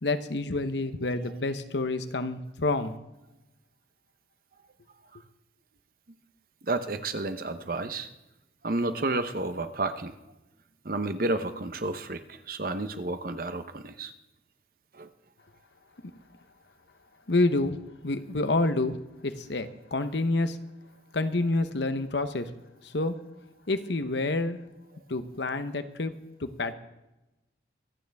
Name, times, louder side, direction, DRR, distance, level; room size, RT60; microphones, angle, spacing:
voice 1, 0.0-3.0 17.3-17.8 18.0-18.9 19.2-20.6 21.1-22.5 22.8-23.2 23.7-24.6 25.1-26.1 26.4-26.7, left 2 dB, 70° left, 10 dB, 1.0 m, -28 dB
voice 2, 6.6-8.1 8.6-10.1 10.8-14.1 14.9-15.1, right 2 dB, 50° right, 10 dB, 0.9 m, -31 dB
25.0 x 9.2 x 3.5 m, 0.96 s
head